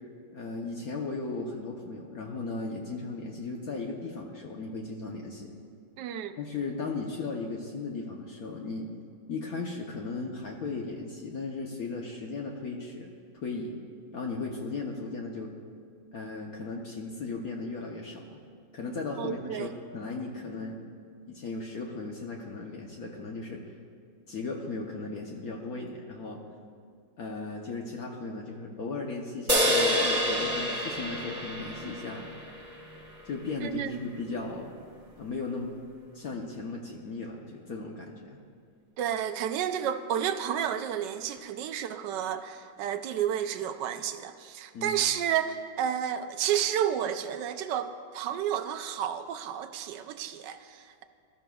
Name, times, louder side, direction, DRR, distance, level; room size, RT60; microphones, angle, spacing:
voice 1, 0.3-5.5 6.4-8.9 9.3-13.8 14.1-15.5 16.1-18.4 18.7-19.7 19.9-20.8 21.3-23.6 24.3-26.4 27.2-32.2 33.2-34.7 35.2-35.8 36.1-38.4 44.7-45.0, left 3 dB, 55° left, -1 dB, 1.2 m, -36 dB
voice 2, 6.0-6.4 19.2-19.7 33.6-34.0 39.0-51.0, right 9 dB, 75° right, 9 dB, 1.1 m, -31 dB
sound 1, 29.5-33.0, equal, 20° right, 1.6 m, -28 dB
18.0 x 13.0 x 2.3 m, 2.2 s
omnidirectional pair, 2.2 m